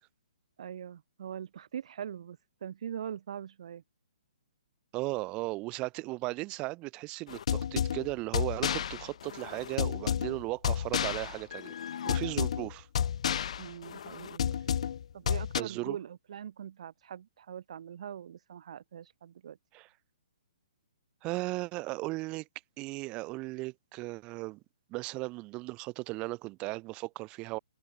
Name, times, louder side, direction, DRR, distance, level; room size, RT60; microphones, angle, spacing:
voice 1, 0.6-3.8 13.6-14.7 15.1-19.6, right 9 dB, 60° right, 4.8 m, -42 dB
voice 2, 4.9-11.7 12.0-12.9 15.6-16.0 19.7-19.9 21.2-22.5 22.8-24.6 24.9-27.6, right 22 dB, 25° right, 0.9 m, -36 dB
sound 1, 7.3-15.6, left 8 dB, 60° left, 1.1 m, -32 dB
hypercardioid pair, 145°, 4 cm